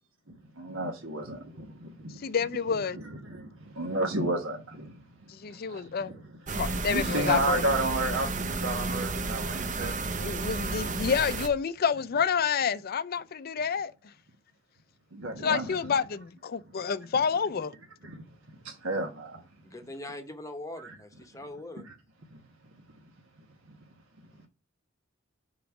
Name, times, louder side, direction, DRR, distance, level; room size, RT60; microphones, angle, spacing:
voice 1, 0.3-2.2 2.9-5.0 5.5-6.2 6.9-10.0 15.1-15.9 18.0-18.2 18.6-19.4 20.8-20.9 22.3-22.4, right 2 dB, 75° right, 1.2 m, -32 dB
voice 2, 2.2-3.0 5.3-6.1 6.5-7.6 10.2-13.9 15.4-17.7, left 6 dB, 45° left, 0.4 m, -28 dB
sound 1, 6.5-11.5, right 3 dB, 40° right, 0.7 m, -32 dB
voice 3, 19.6-21.9, left 1 dB, 15° left, 0.8 m, -41 dB
5.2 x 4.0 x 5.8 m
head